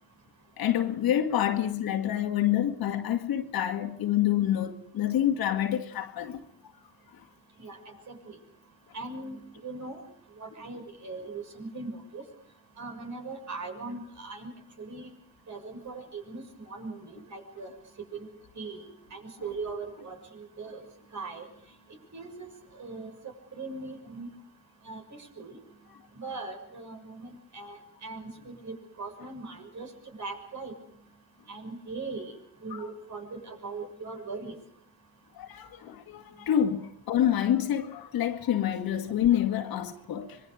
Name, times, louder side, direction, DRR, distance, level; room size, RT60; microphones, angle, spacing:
voice 1, 0.6-6.4 35.4-40.4, left 11 dB, 70° left, 2.2 m, -27 dB
voice 2, 8.1-8.4 8.9-9.4 9.6-10.0 10.4-12.2 12.8-14.5 14.8-15.1 15.5-17.7 18.1-18.3 18.6-18.9 19.1-20.8 21.1-21.5 22.1-22.5 22.8-23.1 23.5-24.3 24.8-25.6 26.1-27.3 27.5-29.9 30.2-30.7 31.5-32.3 32.6-34.5, right 3 dB, 50° right, 6.4 m, -40 dB
25.5 x 22.5 x 5.0 m
cardioid pair, 85°, 37 cm